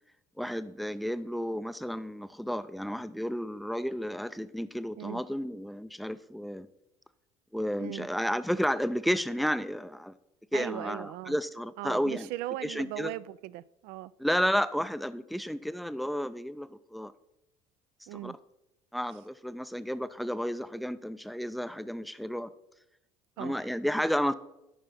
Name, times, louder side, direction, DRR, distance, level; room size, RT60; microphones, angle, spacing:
voice 1, 0.4-6.7 7.5-10.1 10.5-12.3 12.6-13.1 14.2-17.1 18.1-18.3 18.9-22.5 23.4-24.3, equal, ahead, 0.5 m, -32 dB
voice 2, 10.5-11.4 11.8-14.1 18.1-18.4 23.4-23.5, right 17 dB, 60° right, 0.4 m, -38 dB
12.5 x 5.6 x 4.1 m
hypercardioid pair, 65°, 18 cm